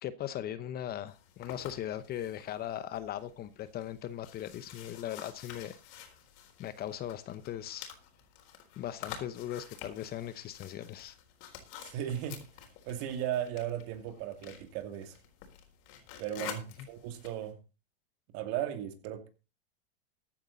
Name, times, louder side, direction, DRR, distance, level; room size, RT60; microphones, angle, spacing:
voice 1, 0.0-5.8 6.6-7.9 8.8-11.2, left 11 dB, 30° left, 0.9 m, -39 dB
sound 1, 1.1-17.5, left 9 dB, 50° left, 4.1 m, -50 dB
voice 2, 11.8-12.5 12.8-15.2 16.2-17.6 18.3-19.3, right 10 dB, 45° right, 2.6 m, -36 dB
15.0 x 10.0 x 4.0 m
supercardioid pair, 130°, 33 cm